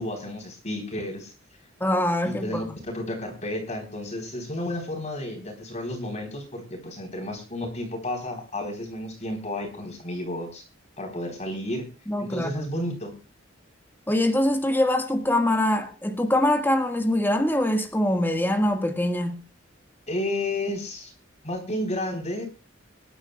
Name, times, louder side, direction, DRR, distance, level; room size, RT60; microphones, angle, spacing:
voice 1, 0.0-1.3 2.2-10.6 11.0-11.9 12.2-13.1 20.1-21.1 21.4-22.5, left 1 dB, 35° left, 4.0 m, -32 dB
voice 2, 1.8-2.8 12.1-12.7 14.1-19.4, left 1 dB, 10° left, 1.7 m, -23 dB
26.0 x 11.0 x 2.4 m
head